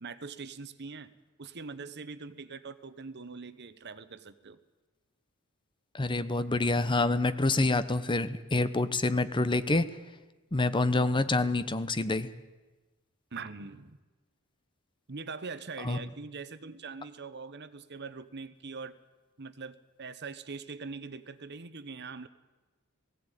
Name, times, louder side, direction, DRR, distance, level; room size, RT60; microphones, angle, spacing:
voice 1, 0.0-1.1 1.4-4.6 13.3-14.0 15.1-19.0 19.4-22.3, right 4 dB, 50° right, 13 dB, 1.0 m, -42 dB
voice 2, 5.9-9.9 10.5-12.3 15.8-16.0, left 2 dB, 20° left, 13 dB, 0.8 m, -27 dB
18.5 x 16.0 x 9.2 m, 1.2 s
head